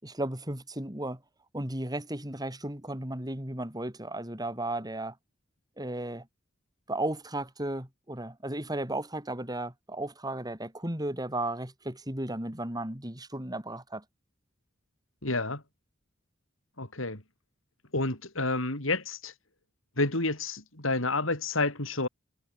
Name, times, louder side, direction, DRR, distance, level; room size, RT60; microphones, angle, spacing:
voice 1, 0.0-1.2 1.5-5.1 5.8-6.3 6.9-14.0, right 1 dB, 20° right, 6.5 m, -34 dB
voice 2, 15.2-15.6 16.8-17.2 17.9-19.3 20.0-22.1, left 2 dB, 85° left, 6.2 m, -29 dB
head